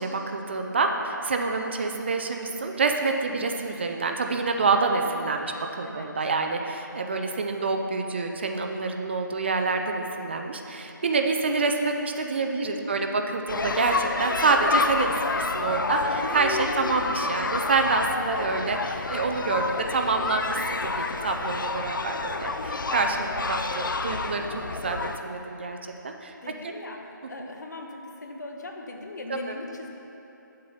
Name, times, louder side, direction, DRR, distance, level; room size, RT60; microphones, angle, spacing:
voice 1, 0.0-15.1 15.3-16.0 16.3-22.5 22.9-24.5 24.8-25.0 25.2-25.8 26.0-26.3 26.6-26.7 29.3-29.5, right 3 dB, 30° right, 4 dB, 0.5 m, -27 dB
voice 2, 12.6-13.1 15.9-16.3 16.7-16.8 17.1-17.2 22.6-22.9 26.4-29.9, left 3 dB, 55° left, 2 dB, 1.3 m, -40 dB
sound 1, 13.5-25.2, left 3 dB, 75° left, 0.6 m, -29 dB
9.3 x 7.6 x 5.6 m, 3.0 s
figure-of-eight pair, 170°, 11 cm